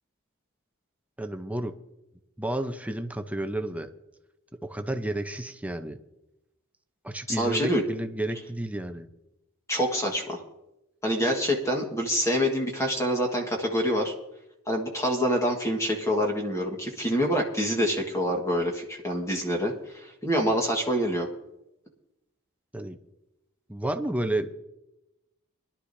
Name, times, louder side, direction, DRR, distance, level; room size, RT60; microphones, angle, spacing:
voice 1, 1.2-1.7 2.4-3.9 4.6-6.0 7.0-9.1 22.7-23.0 23.7-24.5, right 1 dB, 5° right, 7 dB, 0.7 m, -31 dB
voice 2, 7.3-7.8 9.7-10.4 11.0-14.1 14.7-21.3, equal, 15° left, 1 dB, 1.6 m, -26 dB
21.5 x 11.5 x 2.7 m, 0.92 s
head